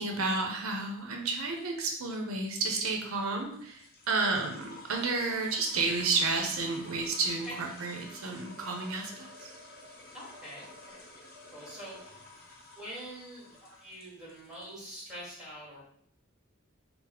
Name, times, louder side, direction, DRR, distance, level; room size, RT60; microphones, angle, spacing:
voice 1, 0.0-9.5, right 3 dB, 80° right, 2 dB, 0.6 m, -31 dB
sound 1, 0.6-15.1, left 2 dB, 45° left, 0.9 m, -52 dB
voice 2, 10.1-11.1 11.5-12.2 12.7-15.8, equal, 5° right, -6 dB, 1.5 m, -45 dB
3.9 x 2.0 x 4.3 m, 0.65 s
head